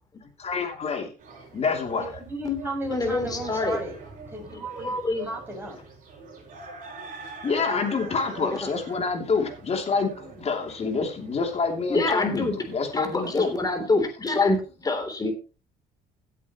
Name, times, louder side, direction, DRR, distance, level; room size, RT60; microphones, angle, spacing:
voice 1, 0.2-1.1 1.5-2.1 7.4-13.6, left 4 dB, 40° left, 4 dB, 3.0 m, -27 dB
sound 1, 1.2-13.7, right 4 dB, 50° right, 6.0 m, -44 dB
voice 2, 2.0-3.9 4.3-4.9 5.2-5.8, right 1 dB, 10° right, -1 dB, 6.8 m, -34 dB
voice 3, 2.9-3.8 4.8-5.3 8.4-8.7 11.9-12.6 12.9-15.3, left 3 dB, 20° left, 6 dB, 3.3 m, -25 dB
16.5 x 8.3 x 3.1 m, 0.32 s
cardioid pair, 110°, 17 cm